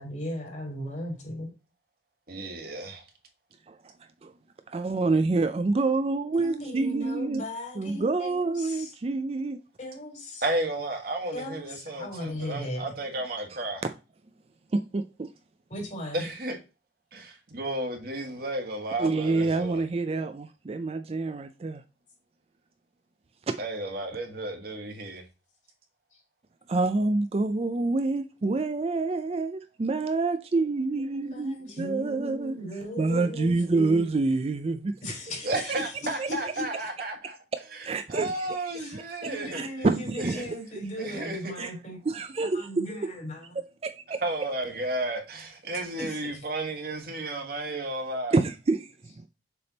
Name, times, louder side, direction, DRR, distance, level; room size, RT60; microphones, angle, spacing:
voice 1, 0.0-1.5 6.3-8.9 9.8-10.4 11.3-12.8 15.7-16.3 26.1-26.2 30.9-34.0 35.0-35.7 36.0-36.6 38.7-42.0 42.5-43.6 46.0-46.2, equal, 40° left, 3.0 m, -37 dB
voice 2, 2.3-3.0 10.4-13.8 16.1-16.6 17.1-19.8 23.6-25.2 35.4-37.4 37.7-39.7 40.2-40.4 40.9-41.4 44.2-48.4, right 2 dB, 55° right, 1.5 m, -33 dB
voice 3, 4.7-7.5 7.8-9.6 13.5-13.6 14.7-15.3 19.0-21.8 23.5-23.6 26.7-32.6 33.0-35.0 36.2-36.3 37.5-38.5 38.9-40.5 41.6-41.7 42.1-43.1 43.5-44.2 48.3-49.3, right 3 dB, 35° right, 0.4 m, -27 dB
6.9 x 3.5 x 3.9 m
head